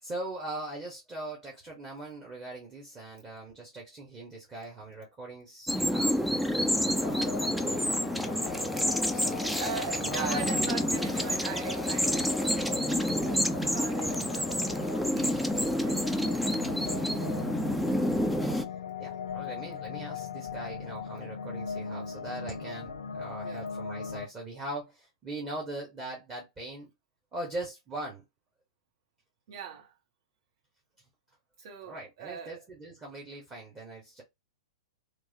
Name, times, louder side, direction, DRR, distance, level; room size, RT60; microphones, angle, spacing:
voice 1, 0.0-6.2 7.0-9.5 10.1-10.4 19.0-26.9 27.3-28.2 31.8-34.2, right 2 dB, 20° right, 1.1 m, -40 dB
sound 1, 5.7-18.6, equal, ahead, 0.3 m, -29 dB
sound 2, 6.9-24.3, left 7 dB, 70° left, 0.4 m, -39 dB
voice 2, 9.6-16.8 23.4-23.6 29.5-29.9 31.6-32.6, right 8 dB, 50° right, 1.2 m, -42 dB
3.2 x 2.1 x 2.8 m
figure-of-eight pair, 105°, 3 cm